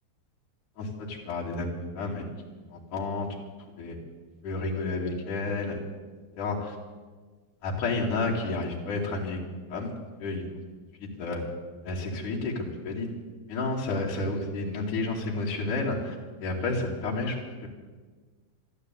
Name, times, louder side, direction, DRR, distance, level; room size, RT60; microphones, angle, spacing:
voice 1, 0.8-2.3 2.7-3.3 3.8-4.0 4.4-5.8 6.4-6.7 7.6-9.4 9.7-9.9 10.2-10.4 11.0-11.4 11.8-13.1 13.5-16.2 16.4-17.3 17.6-17.7, left 3 dB, 60° left, -4 dB, 4.1 m, -30 dB
14.0 x 12.0 x 8.3 m, 1.4 s
omnidirectional pair, 4.1 m